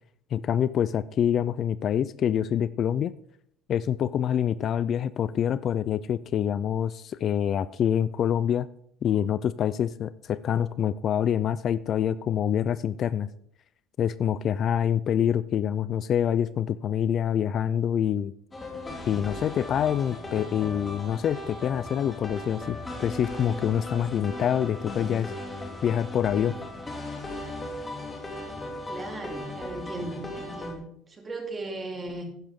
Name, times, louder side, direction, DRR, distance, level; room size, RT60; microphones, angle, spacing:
voice 1, 0.3-3.1 3.7-8.7 9.0-13.3 14.0-18.3 19.0-25.3 25.8-26.6, left 9 dB, 45° left, 16 dB, 0.4 m, -26 dB
sound 1, 18.5-30.7, left 1 dB, 15° left, 2.5 m, -37 dB
voice 2, 28.9-32.3, right 2 dB, 25° right, 3 dB, 2.6 m, -37 dB
11.0 x 10.0 x 3.7 m, 0.69 s
cardioid pair, 120°, 0 cm